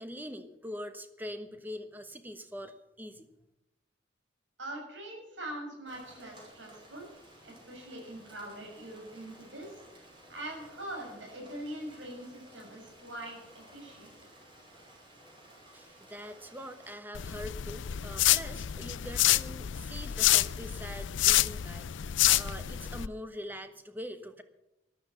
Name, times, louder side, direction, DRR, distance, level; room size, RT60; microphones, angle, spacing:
voice 1, 0.0-3.3 15.7-24.4, equal, 10° right, 8 dB, 1.2 m, -43 dB
voice 2, 4.6-7.1 7.4-9.8 10.3-14.2, right 1 dB, 80° right, 1 dB, 6.8 m, -43 dB
Rain, 5.9-17.0, right 1 dB, 25° right, 6.0 m, -55 dB
sound 1, 17.1-23.1, left 14 dB, 80° left, 0.5 m, -28 dB
13.5 x 12.5 x 6.6 m, 0.90 s
head